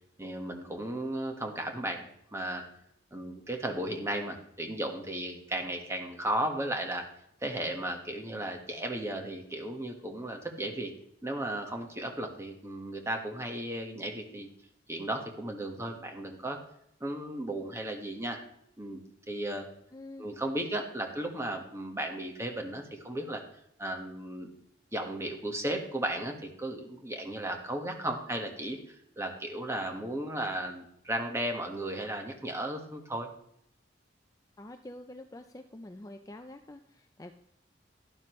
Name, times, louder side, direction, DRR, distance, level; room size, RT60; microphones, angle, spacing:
voice 1, 0.2-2.1 2.3-2.6 3.1-7.1 7.4-10.9 11.2-14.5 14.9-16.6 17.0-18.4 18.8-19.0 19.3-19.7 20.2-23.4 23.8-24.5 24.9-33.3, right 1 dB, 15° right, 3 dB, 1.5 m, -35 dB
voice 2, 19.9-20.3 34.6-37.3, left 1 dB, 20° left, 6 dB, 0.5 m, -46 dB
12.0 x 11.0 x 3.2 m, 0.72 s
head